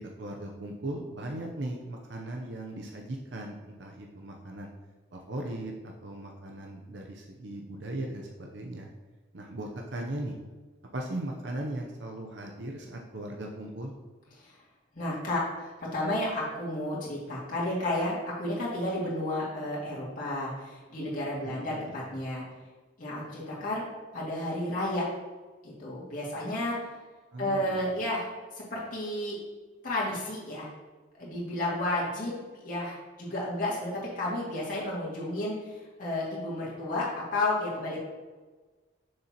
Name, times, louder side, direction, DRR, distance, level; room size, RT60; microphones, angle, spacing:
voice 1, 0.2-4.7 5.1-8.9 9.3-10.3 10.9-14.0 21.4-22.0 27.3-27.9, right 1 dB, 65° right, 1 dB, 0.7 m, -38 dB
voice 2, 14.9-22.4 23.0-23.8 24.1-25.1 25.6-26.9 27.4-28.3 28.5-29.4 29.8-30.7 31.1-32.3 32.6-38.0, left 1 dB, 45° left, -7 dB, 2.2 m, -32 dB
6.8 x 6.8 x 2.9 m, 1.3 s
head